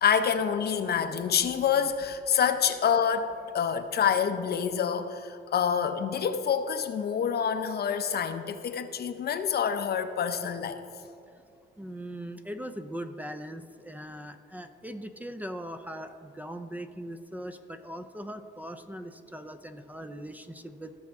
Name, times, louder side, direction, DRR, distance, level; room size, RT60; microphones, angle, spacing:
voice 1, 0.0-10.8, left 7 dB, 55° left, 9 dB, 0.6 m, -27 dB
voice 2, 11.8-20.9, equal, 10° right, 8 dB, 0.5 m, -40 dB
17.0 x 6.3 x 3.5 m, 2.5 s
cardioid pair, 90°, 20 cm